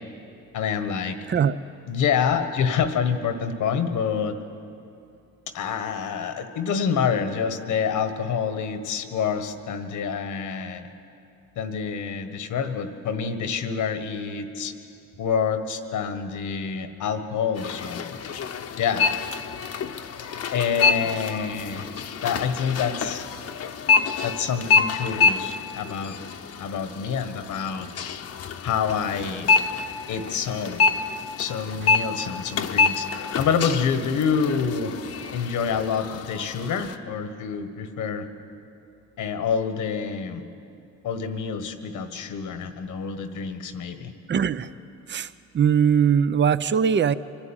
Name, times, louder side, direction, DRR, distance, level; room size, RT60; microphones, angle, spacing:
voice 1, 0.5-1.2 1.9-4.3 5.5-10.8 11.5-14.7 15.2-18.2 18.8-19.0 20.5-21.9 22.2-23.3 24.2-26.2 26.6-27.9 28.6-29.5 30.1-30.8 31.4-33.1 33.4-34.9 35.3-38.3 39.2-40.4 41.0-44.1, left 6 dB, 80° left, 8 dB, 1.6 m, -27 dB
sound 1, 17.5-37.0, left 5 dB, 55° left, 1.0 m, -27 dB
voice 2, 44.3-44.7 45.1-47.1, right 7 dB, 40° right, 15 dB, 0.6 m, -21 dB
24.0 x 12.0 x 9.0 m, 2.6 s
cardioid pair, 90°, 30 cm